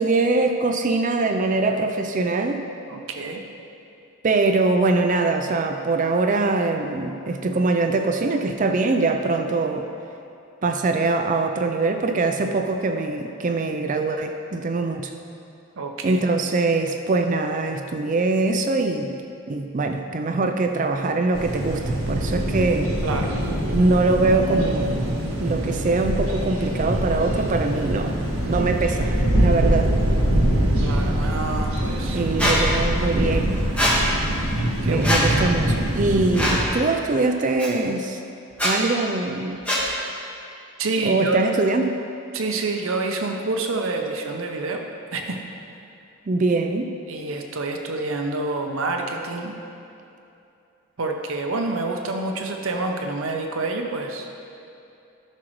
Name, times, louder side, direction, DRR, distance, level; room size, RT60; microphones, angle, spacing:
voice 1, 0.0-2.7 4.2-9.9 10.6-15.1 16.0-19.2 19.5-22.9 23.7-25.0 25.4-28.2 28.5-29.9 32.1-33.6 34.8-38.2 38.6-39.6 41.0-42.0 46.3-46.9, right 3 dB, 35° right, 5 dB, 0.4 m, -23 dB
voice 2, 2.9-3.4 15.8-16.2 23.0-23.4 30.8-32.2 34.8-35.3 40.8-41.4 42.3-44.8 45.1-45.4 47.1-49.6 51.0-54.3, right 3 dB, 65° right, 3 dB, 0.7 m, -28 dB
sound 1, 21.3-36.7, right 1 dB, 80° right, 1.5 m, -23 dB
Squeak, 32.4-32.6 33.8-33.9 35.0-35.2 36.3-36.6 37.6-37.7 38.5-38.7 39.7-39.8, equal, 5° left, 1.3 m, -21 dB
13.5 x 6.3 x 3.1 m, 2.7 s
head